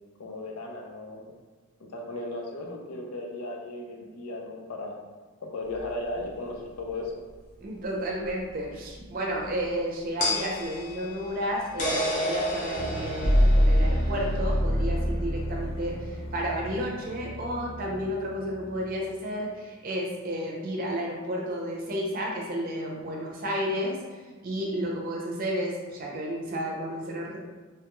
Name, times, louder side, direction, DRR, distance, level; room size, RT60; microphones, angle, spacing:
voice 1, 0.2-1.3 1.8-4.9 5.5-7.1, left 2 dB, 85° left, 1 dB, 0.5 m, -36 dB
sound 1, 5.8-5.9 8.3-8.4 10.2-14.6, equal, 35° left, 0.5 m, -31 dB
voice 2, 7.6-27.4, equal, 40° right, -2 dB, 0.6 m, -32 dB
sound 2, 12.7-19.0, equal, 65° left, 1.0 m, -26 dB
3.3 x 2.3 x 3.0 m, 1.4 s
head